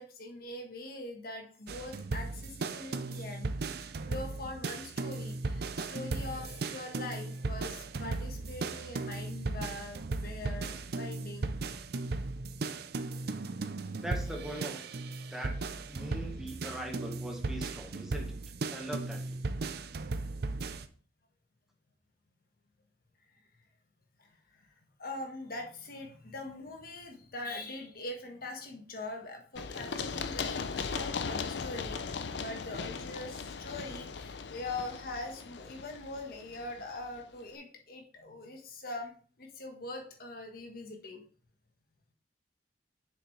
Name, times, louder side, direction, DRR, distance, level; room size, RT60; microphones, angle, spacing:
voice 1, 0.0-11.5 24.2-24.7 25.0-41.2, left 2 dB, 55° left, 2 dB, 1.5 m, -43 dB
sound 1, 1.7-20.9, right 3 dB, 60° right, 0.6 m, -37 dB
voice 2, 14.0-15.0 15.3-15.5 15.9-18.4 18.7-19.4, right 1 dB, 5° right, 0 dB, 1.5 m, -41 dB
Run, 29.6-37.2, left 5 dB, 70° left, 0.5 m, -38 dB
7.1 x 6.3 x 3.3 m, 0.42 s
head